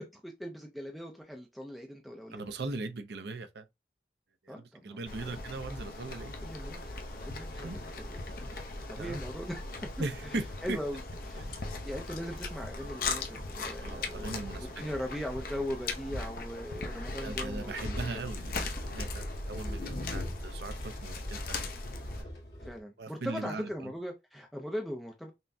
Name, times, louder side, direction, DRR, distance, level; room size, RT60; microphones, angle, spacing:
voice 1, 0.2-2.4 4.5-5.4 6.4-6.8 7.2-8.2 8.9-9.6 10.6-11.0 11.3-11.6 11.8-18.1 22.7-25.3, equal, ahead, 0.4 m, -40 dB
voice 2, 2.3-3.6 4.4-6.3 7.6-7.8 9.0-9.2 10.0-10.8 11.3-11.5 13.8-14.8 17.2-18.5 18.8-21.7 22.1-22.4 23.0-23.9, right 3 dB, 65° right, 0.6 m, -39 dB
sound 1, 5.1-22.2, left 3 dB, 50° left, 0.6 m, -39 dB
sound 2, 5.4-15.2, equal, 90° left, 1.3 m, -52 dB
sound 3, 17.4-22.8, left 1 dB, 70° left, 1.5 m, -41 dB
5.5 x 2.1 x 2.6 m
head